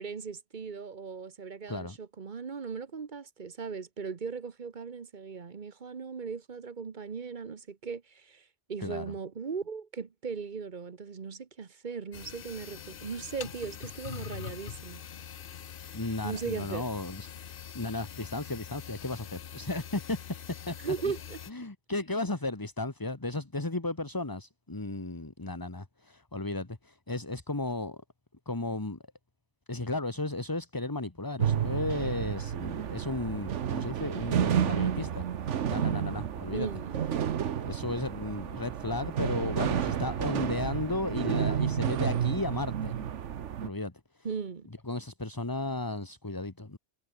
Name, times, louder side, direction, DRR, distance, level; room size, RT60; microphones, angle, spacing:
voice 1, 0.0-15.0 16.2-16.8 20.8-21.4 36.5-37.0 44.2-44.7, right 5 dB, 40° right, 1.1 m, -38 dB
voice 2, 8.8-9.1 15.9-17.3 17.7-20.2 20.5-20.8 21.5-28.0 28.4-29.0 29.7-36.7 37.6-43.1 43.6-44.3 44.9-46.8, left 2 dB, 15° left, 1.5 m, -34 dB
sound 1, 12.1-21.5, left 8 dB, 50° left, 0.9 m, -44 dB
sound 2, 31.4-43.7, right 9 dB, 75° right, 1.3 m, -31 dB
omnidirectional pair, 1.3 m